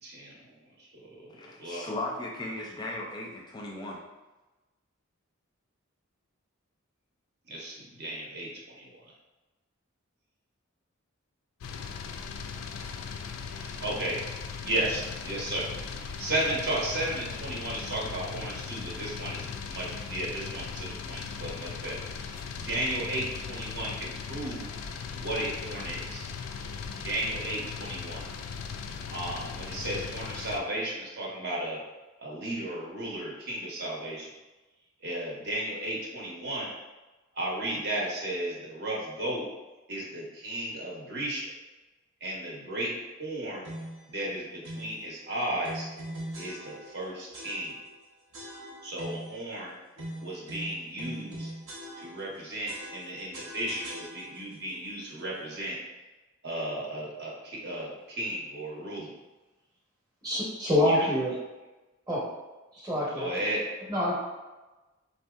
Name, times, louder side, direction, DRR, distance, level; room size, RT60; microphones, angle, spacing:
voice 1, 0.0-1.3 1.6-1.9 7.5-9.0 13.5-14.2 14.6-24.6 25.2-26.2 26.9-28.3 29.1-31.8 32.2-34.3 35.0-36.7 37.3-39.5 39.9-41.5 42.2-42.9 43.2-43.6 44.1-45.9 46.3-47.7 48.8-49.7 50.2-51.5 52.0-55.8 56.4-59.1 60.8-61.1 63.1-63.6, right 1 dB, 50° right, -4 dB, 0.7 m, -34 dB
voice 2, 1.3-4.0, left 2 dB, 20° left, -1 dB, 0.4 m, -37 dB
sound 1, 11.6-30.6, left 5 dB, 85° left, 0.3 m, -38 dB
sound 2, 43.6-44.1 44.6-45.0 45.6-47.0 47.3-48.0 48.3-49.4 50.0-52.4 52.7-54.5, right 1 dB, 90° right, 0.8 m, -41 dB
voice 3, 60.2-61.3 62.1-62.2 62.7-63.3 63.9-64.1, left 1 dB, 20° right, -5 dB, 0.8 m, -26 dB
3.6 x 2.7 x 2.3 m, 1.1 s
head